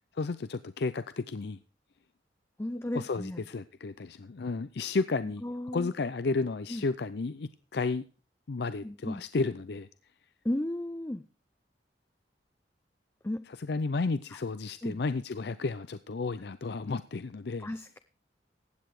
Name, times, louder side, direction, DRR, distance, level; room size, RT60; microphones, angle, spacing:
voice 1, 0.2-1.6 2.9-5.4 5.7-8.0 8.5-9.9 13.6-17.7, left 3 dB, 65° left, 13 dB, 0.5 m, -32 dB
voice 2, 2.6-3.5 5.4-6.1 6.7-6.9 8.8-9.2 10.4-11.2 13.2-13.5 14.8-15.0 17.6-18.0, left 1 dB, 15° left, 10 dB, 0.5 m, -34 dB
15.5 x 8.9 x 4.8 m, 0.39 s
head